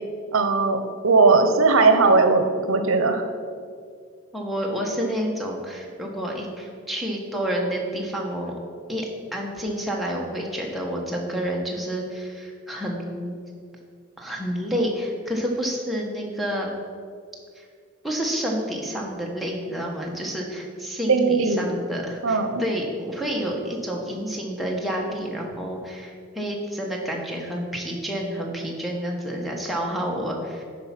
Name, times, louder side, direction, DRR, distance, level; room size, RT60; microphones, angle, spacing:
voice 1, 0.3-3.3 21.1-21.7 22.2-22.6, right 3 dB, 85° right, 7 dB, 0.7 m, -19 dB
voice 2, 4.3-8.5 8.9-13.4 14.2-16.7 17.6-17.7 18.0-30.6, equal, ahead, -2 dB, 1.1 m, -29 dB
10.5 x 4.7 x 5.8 m, 2.2 s
head